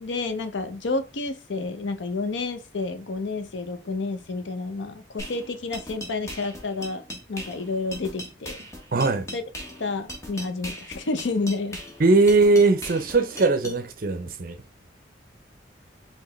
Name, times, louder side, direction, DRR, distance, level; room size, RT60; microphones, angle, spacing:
voice 1, 0.0-7.0 7.3-8.7 9.3-9.4 9.8-11.8, left 3 dB, 85° left, 0.6 m, -30 dB
sound 1, 5.2-13.8, equal, 15° left, 0.9 m, -39 dB
voice 2, 8.9-9.3 12.0-14.6, right 3 dB, 50° right, 0.6 m, -20 dB
4.7 x 3.2 x 3.1 m
head